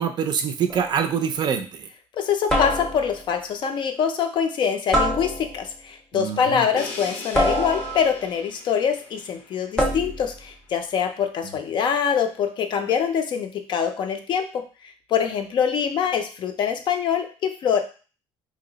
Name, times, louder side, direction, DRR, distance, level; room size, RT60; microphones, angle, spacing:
voice 1, 0.0-1.9 6.1-6.6 11.4-11.5, right 7 dB, 45° right, 7 dB, 0.4 m, -25 dB
sound 1, 0.7-1.0 2.5-3.3 4.9-5.8 7.3-8.3 9.8-10.4, equal, 5° left, 0.7 m, -25 dB
voice 2, 2.1-14.6 15.1-17.8, left 7 dB, 50° left, 6 dB, 0.5 m, -24 dB
Crash cymbal, 6.8-10.6, left 4 dB, 85° left, 0.7 m, -40 dB
2.8 x 2.0 x 3.9 m, 0.36 s
cardioid pair, 130°, 11 cm